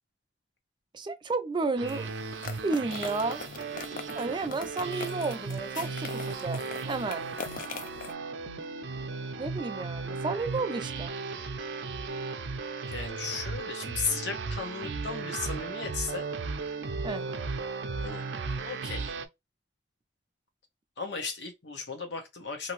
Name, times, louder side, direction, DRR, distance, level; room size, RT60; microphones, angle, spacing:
voice 1, 0.9-2.1 2.6-3.4 4.1-6.6 6.9-7.2 9.4-11.1 17.0-17.2, right 3 dB, 25° right, 0.4 m, -32 dB
sound 1, 1.8-19.3, right 4 dB, 85° right, 0.5 m, -36 dB
sound 2, 1.9-8.1, left 5 dB, 50° left, 0.4 m, -42 dB
voice 2, 12.9-16.2 18.0-18.2 18.5-19.1 21.0-22.7, left 5 dB, 75° left, 0.9 m, -35 dB
2.7 x 2.7 x 3.0 m
head